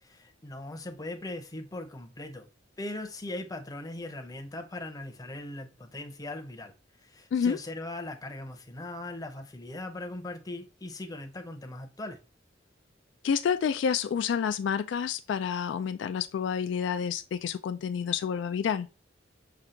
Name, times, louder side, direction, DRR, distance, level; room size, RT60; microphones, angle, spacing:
voice 1, 0.0-2.5 2.8-6.7 7.0-12.2, left 2 dB, 20° left, 0.7 m, -39 dB
voice 2, 13.2-18.9, left 7 dB, 70° left, 0.3 m, -29 dB
5.6 x 2.3 x 3.7 m
head